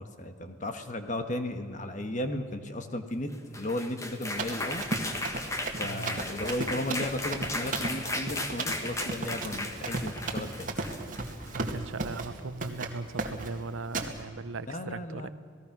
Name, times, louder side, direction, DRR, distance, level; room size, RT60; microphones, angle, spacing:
voice 1, 0.0-4.8 5.7-10.7 14.7-15.3, left 1 dB, 35° left, 7 dB, 1.5 m, -35 dB
sound 1, 3.3-11.6, left 2 dB, 15° left, 1.4 m, -36 dB
Run, 4.3-12.4 12.6-12.9 13.2-13.6 13.9-14.1, right 2 dB, 40° right, 2.0 m, -36 dB
voice 2, 5.8-6.2 10.9-11.2 11.5-15.3, right 3 dB, 75° right, 15 dB, 0.8 m, -38 dB
28.0 x 19.0 x 6.1 m, 2.4 s
head